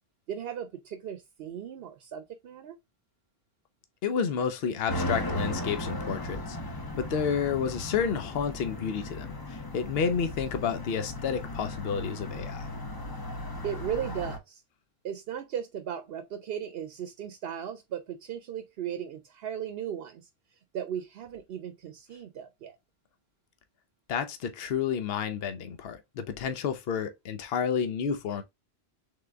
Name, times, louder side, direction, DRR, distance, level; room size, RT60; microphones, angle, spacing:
voice 1, 0.3-2.8 13.6-14.6 15.0-20.3 20.7-22.8, right 9 dB, 70° right, 0.8 m, -36 dB
voice 2, 4.0-6.6 7.0-12.7 24.1-28.4, left 7 dB, 70° left, 0.9 m, -30 dB
sound 1, 4.9-14.4, left 1 dB, 25° left, 0.7 m, -36 dB
3.8 x 3.6 x 3.4 m
omnidirectional pair, 1.1 m